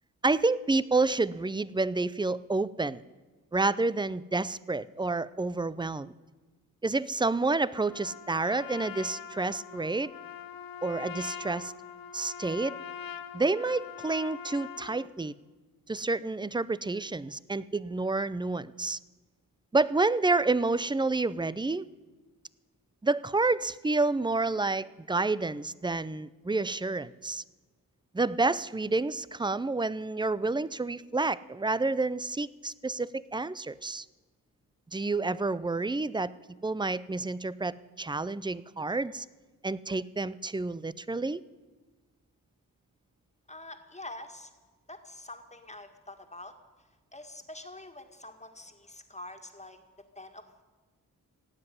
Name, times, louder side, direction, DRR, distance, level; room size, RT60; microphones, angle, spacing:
voice 1, 0.2-3.0 3.5-6.1 6.8-10.1 10.8-11.7 12.1-12.8 13.3-15.3 15.9-19.0 19.7-21.9 23.0-27.4 28.1-34.1 34.9-36.3 36.6-39.3 39.6-41.4, right 3 dB, 15° right, 19 dB, 0.5 m, -29 dB
Trumpet, 7.9-15.1, left 8 dB, 70° left, 1.0 m, -43 dB
voice 2, 43.5-44.5 44.9-46.5 47.1-49.8 50.2-50.4, left 1 dB, 20° left, 5 dB, 2.0 m, -45 dB
16.5 x 7.8 x 9.5 m, 1.3 s
cardioid pair, 45°, 36 cm